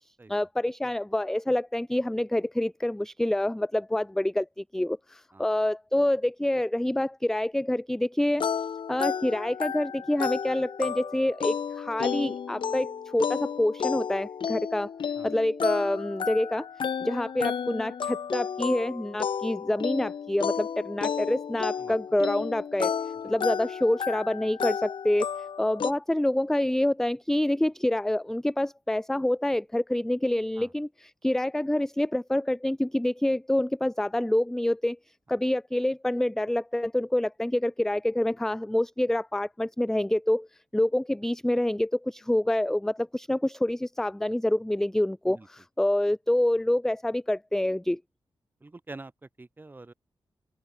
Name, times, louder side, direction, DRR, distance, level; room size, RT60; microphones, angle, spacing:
voice 1, 0.3-8.5 8.9-14.9 15.2-16.7 17.0-22.9 23.2-25.3 25.6-35.0 35.3-40.5 40.7-45.4 45.8-48.0, left 1 dB, 5° left, 0.4 m, -27 dB
sound 1, 8.4-25.9, left 7 dB, 60° left, 0.7 m, -32 dB
voice 2, 45.2-45.6 48.6-49.9, right 2 dB, 20° right, 2.9 m, -46 dB
open air
wide cardioid pair, 170°, 10 cm